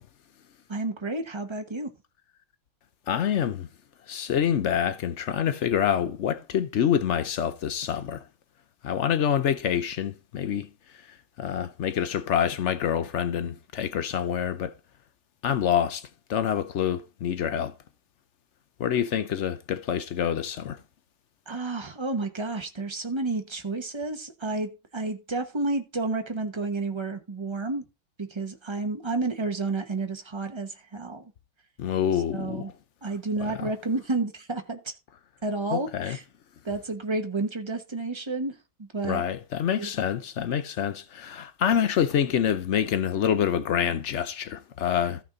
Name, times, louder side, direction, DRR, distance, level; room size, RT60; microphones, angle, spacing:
voice 1, 0.7-1.9 21.5-27.8 28.2-31.3 32.3-32.7 33.0-34.9 35.4-36.2 36.6-39.2 39.8-39.9, right 3 dB, 25° right, 0.5 m, -31 dB
voice 2, 3.1-3.7 4.1-8.2 8.8-14.7 15.4-17.7 18.8-20.8 31.8-32.7 33.4-33.7 35.7-36.2 39.0-45.2, left 9 dB, 85° left, 0.6 m, -27 dB
14.5 x 6.0 x 3.9 m
omnidirectional pair, 2.2 m